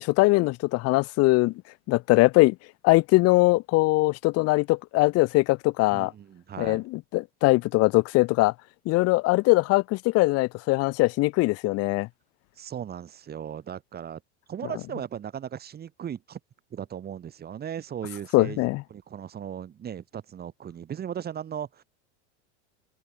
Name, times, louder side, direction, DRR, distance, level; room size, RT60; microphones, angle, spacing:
voice 1, 0.0-1.5 1.9-2.5 2.8-6.1 6.6-8.5 8.9-12.1 18.3-18.8, left 21 dB, 45° left, 0.8 m, -21 dB
voice 2, 5.9-6.8 12.6-14.2 14.5-16.4 16.7-21.8, right 9 dB, 25° right, 1.6 m, -37 dB
open air
supercardioid pair, 115°, 35 cm